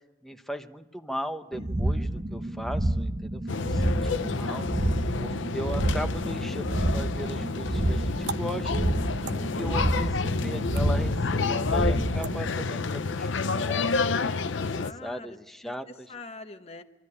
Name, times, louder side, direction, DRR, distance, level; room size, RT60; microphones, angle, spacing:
voice 1, 0.2-8.9 9.3-13.3 13.6-16.1, equal, ahead, 6 dB, 0.9 m, -38 dB
sound 1, 1.5-13.3, right 1 dB, 30° right, 0.8 m, -29 dB
voice 2, 1.6-2.5 4.9-5.3 14.7-15.4 15.6-16.8, left 3 dB, 30° left, 7 dB, 1.1 m, -46 dB
sound 2, 3.5-14.9, left 4 dB, 75° left, 0.7 m, -29 dB
sound 3, 7.1-12.9, right 5 dB, 60° right, 0.8 m, -45 dB
25.5 x 13.5 x 9.8 m, 1.1 s
head